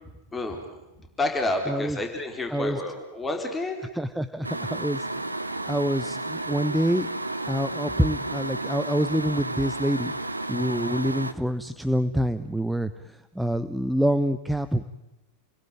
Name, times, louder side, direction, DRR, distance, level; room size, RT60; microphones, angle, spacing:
voice 1, 0.3-3.8, left 2 dB, 15° left, 4 dB, 4.5 m, -30 dB
voice 2, 1.7-2.0 2.5-2.8 3.9-5.1 5.7-7.1 7.5-10.1 10.5-14.8, equal, ahead, 11 dB, 1.0 m, -26 dB
sound 1, 4.4-11.3, right 2 dB, 85° right, 1.4 m, -32 dB
30.0 x 21.5 x 9.3 m, 1.0 s
figure-of-eight pair, 90°, 0 cm